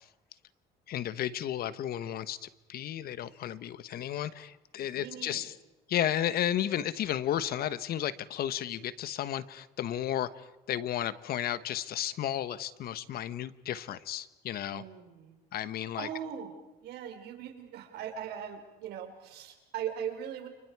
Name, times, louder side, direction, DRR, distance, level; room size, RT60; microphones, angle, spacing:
voice 1, 0.9-5.5 5.9-14.8 15.5-16.1, left 11 dB, 65° left, 15 dB, 1.2 m, -33 dB
voice 2, 4.9-5.5 14.7-15.3 16.0-16.5 16.8-20.5, right 9 dB, 75° right, 5 dB, 4.5 m, -39 dB
29.5 x 29.5 x 4.8 m, 1.0 s
cardioid pair, 110°, 17 cm